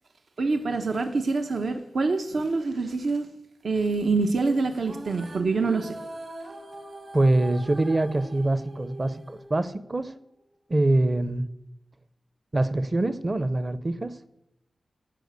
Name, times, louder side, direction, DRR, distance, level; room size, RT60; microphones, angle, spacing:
voice 1, 0.4-3.3 3.6-5.9, right 3 dB, 75° right, 1.0 m, -25 dB
sound 1, 4.7-10.2, right 2 dB, 55° right, 1.8 m, -42 dB
voice 2, 7.1-10.1 10.7-11.5 12.5-14.1, right 2 dB, 35° right, 0.7 m, -24 dB
15.0 x 5.1 x 8.2 m
wide cardioid pair, 95°, 0 cm